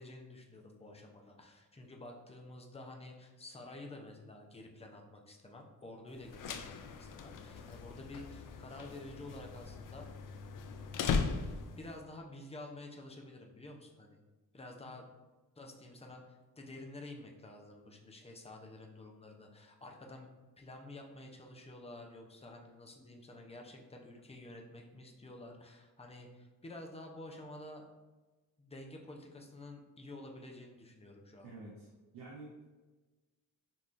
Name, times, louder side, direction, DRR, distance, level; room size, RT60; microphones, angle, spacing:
voice 1, 0.0-10.1 11.0-14.2 14.5-15.1 15.6-20.3 20.6-27.8 28.6-31.5, left 2 dB, 15° left, 1 dB, 0.6 m, -50 dB
sound 1, 6.2-11.9, left 5 dB, 60° left, 0.5 m, -39 dB
voice 2, 31.4-31.9 32.1-32.7, right 2 dB, 80° right, -6 dB, 1.1 m, -49 dB
5.5 x 3.0 x 2.5 m, 1.2 s
cardioid pair, 85°, 38 cm